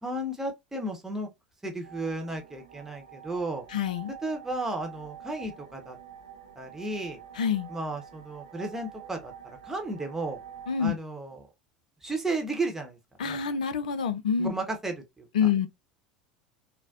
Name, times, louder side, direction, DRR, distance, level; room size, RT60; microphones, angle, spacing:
voice 1, 0.0-1.3 1.6-3.7 4.2-6.0 6.6-7.2 7.7-10.4 10.8-11.5 12.0-13.4 14.4-15.3, right 2 dB, 10° right, 0.9 m, -34 dB
sound 1, 1.8-10.8, right 8 dB, 65° right, 0.5 m, -47 dB
voice 2, 3.7-4.1 7.4-7.7 10.7-11.0 13.2-14.5 15.3-15.7, left 7 dB, 70° left, 0.4 m, -26 dB
4.0 x 2.1 x 2.4 m
figure-of-eight pair, 75°, 4 cm